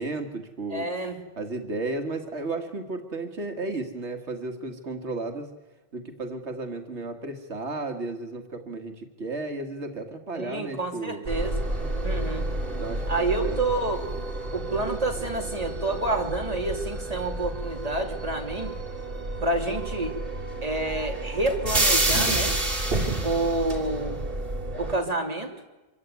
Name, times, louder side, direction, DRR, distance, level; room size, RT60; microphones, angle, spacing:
voice 1, 0.0-5.5 5.9-11.2 12.8-13.6, right 2 dB, 85° right, 5 dB, 2.1 m, -34 dB
voice 2, 0.7-1.2 10.3-11.6 12.0-12.5 13.1-14.0 14.5-18.7 19.4-20.1 20.6-22.6 23.2-24.2 24.8-25.5, right 2 dB, 35° right, 2 dB, 3.3 m, -28 dB
sound 1, 11.3-25.0, right 2 dB, 55° right, 3.6 m, -29 dB
25.5 x 15.0 x 9.5 m, 1.1 s
omnidirectional pair, 1.1 m